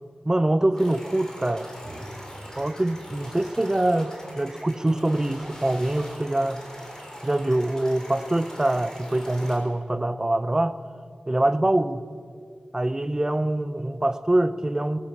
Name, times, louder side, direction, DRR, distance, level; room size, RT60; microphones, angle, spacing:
voice 1, 0.3-1.7 2.6-6.6 7.2-10.8 11.3-12.0 12.7-15.0, right 1 dB, 20° right, 13 dB, 0.7 m, -24 dB
sound 1, 0.8-9.6, equal, 20° left, 4.2 m, -42 dB
sound 2, 1.8-6.5, right 1 dB, 55° right, 4.5 m, -48 dB
20.0 x 18.0 x 7.3 m, 2.2 s
wide cardioid pair, 100°, 3 cm